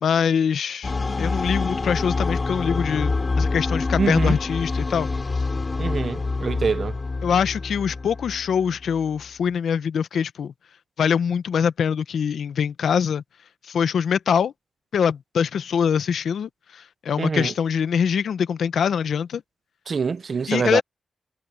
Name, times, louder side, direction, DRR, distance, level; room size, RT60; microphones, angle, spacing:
voice 1, 0.0-0.9 1.2-5.1 7.2-10.5 11.0-13.2 13.7-14.5 14.9-19.4 20.5-20.8, left 7 dB, 80° left, 0.9 m, -23 dB
sound 1, 0.8-9.0, left 3 dB, 30° left, 3.0 m, -26 dB
voice 2, 4.0-4.4 5.8-7.0 17.2-17.5 19.9-20.8, right 5 dB, 45° right, 0.5 m, -25 dB
wide cardioid pair, 140°, 0 cm